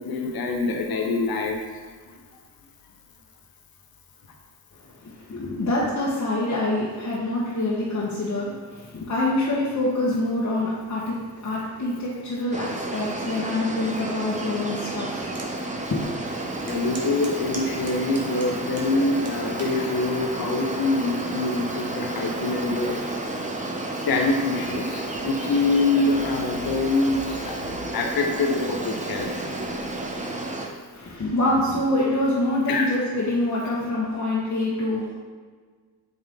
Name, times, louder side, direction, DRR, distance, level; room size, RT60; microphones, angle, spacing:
voice 1, 0.0-1.6 16.7-23.0 24.1-27.6 27.9-29.4 32.7-32.9, left 3 dB, 55° left, 2 dB, 1.1 m, -25 dB
voice 2, 5.0-11.1 11.4-15.4 15.9-16.0 30.9-35.0, left 1 dB, 40° left, -7 dB, 1.5 m, -25 dB
sound 1, 12.5-30.7, right 2 dB, 15° right, 0.9 m, -31 dB
sound 2, 15.3-15.5 16.0-16.1 16.7-18.9 19.3-19.8 20.5-20.8, right 2 dB, 35° right, 1.4 m, -40 dB
7.6 x 3.5 x 3.7 m, 1.6 s
supercardioid pair, 45°, 42 cm